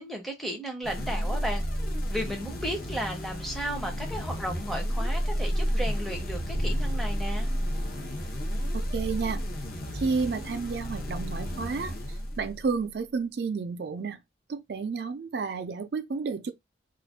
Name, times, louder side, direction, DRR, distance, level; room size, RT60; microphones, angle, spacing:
voice 1, 0.0-1.6 2.1-7.5, equal, ahead, 0.6 m, -34 dB
sound 1, 0.8-12.8, equal, 50° left, 0.7 m, -31 dB
voice 2, 8.7-9.4 9.9-14.2 14.5-16.5, right 5 dB, 60° right, 0.4 m, -31 dB
2.4 x 2.2 x 3.5 m
head